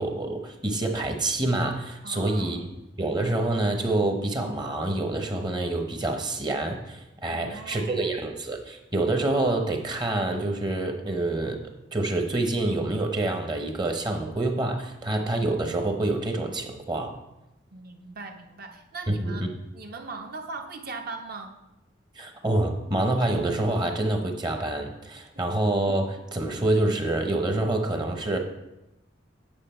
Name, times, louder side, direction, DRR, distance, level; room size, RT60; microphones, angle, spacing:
voice 1, 0.0-2.7 3.0-11.6 11.9-17.2 19.1-19.5 22.2-28.4, right 2 dB, 25° right, 4 dB, 0.8 m, -27 dB
voice 2, 2.0-2.7 7.3-8.1 17.7-19.5 19.7-21.6 25.3-25.4, right 3 dB, 50° right, 4 dB, 0.9 m, -40 dB
9.0 x 5.8 x 4.3 m, 0.92 s
head